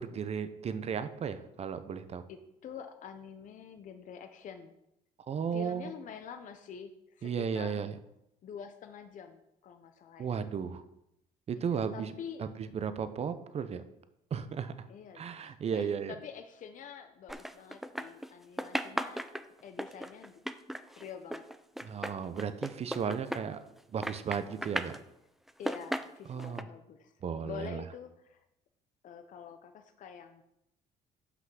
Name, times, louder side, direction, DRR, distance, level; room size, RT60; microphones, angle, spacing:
voice 1, 0.0-2.2 5.3-5.9 7.2-7.9 10.2-10.8 11.5-12.1 12.4-13.8 14.3-14.7 15.1-16.1 21.8-23.6 23.9-24.9 26.3-26.7 27.2-27.8, right 7 dB, 40° right, 11 dB, 0.7 m, -35 dB
voice 2, 2.3-4.7 5.5-7.9 8.4-10.4 11.6-12.5 14.9-20.4 21.0-21.4 25.6-27.1 27.4-28.4 29.0-30.4, left 7 dB, 50° left, 7 dB, 0.7 m, -47 dB
sound 1, 17.3-18.3 18.6-23.8 24.0-25.0 25.5-26.6, equal, ahead, 0.4 m, -36 dB
6.0 x 5.7 x 6.1 m, 0.83 s
cardioid pair, 110°, 17 cm